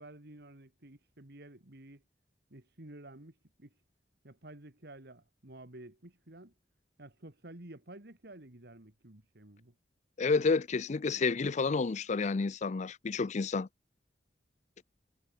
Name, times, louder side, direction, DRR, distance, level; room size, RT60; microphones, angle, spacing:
voice 1, 0.0-2.0 2.5-3.7 4.2-6.5 7.0-9.7, right 1 dB, 65° right, 2.5 m, -51 dB
voice 2, 10.2-13.7, left 4 dB, 40° left, 0.5 m, -30 dB
head